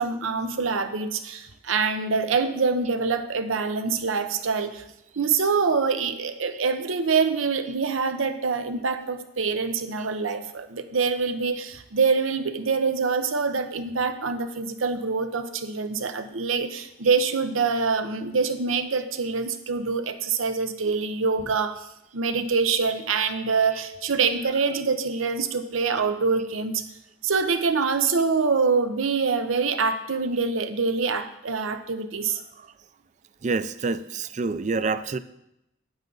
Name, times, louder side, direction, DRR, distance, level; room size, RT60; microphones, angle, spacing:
voice 1, 0.0-4.8 5.2-21.9 22.1-26.8 27.2-32.4, right 5 dB, 90° right, 9 dB, 0.8 m, -25 dB
voice 2, 33.4-35.2, right 4 dB, 35° right, 14 dB, 0.4 m, -28 dB
9.2 x 9.0 x 3.9 m, 0.86 s
head